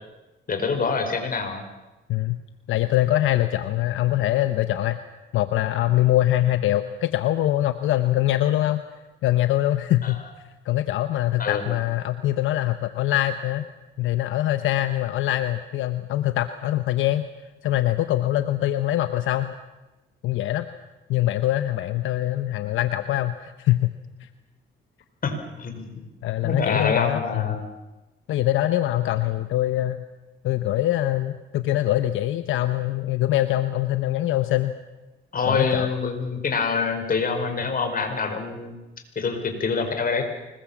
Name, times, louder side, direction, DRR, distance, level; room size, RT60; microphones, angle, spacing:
voice 1, 0.5-1.6 10.0-10.3 11.4-11.6 25.2-26.0 26.4-27.7 35.3-38.8 39.1-40.2, left 4 dB, 45° left, 6 dB, 5.0 m, -26 dB
voice 2, 2.1-2.4 2.7-5.0 5.3-8.8 9.2-10.2 10.6-13.6 14.0-17.3 17.6-19.5 20.2-20.7 21.1-23.9 24.2-24.3 26.2-27.6 28.3-30.0 30.4-34.8 35.5-35.9, left 14 dB, 85° left, 10 dB, 1.0 m, -23 dB
25.5 x 21.5 x 7.3 m, 1.0 s
cardioid pair, 90°, 20 cm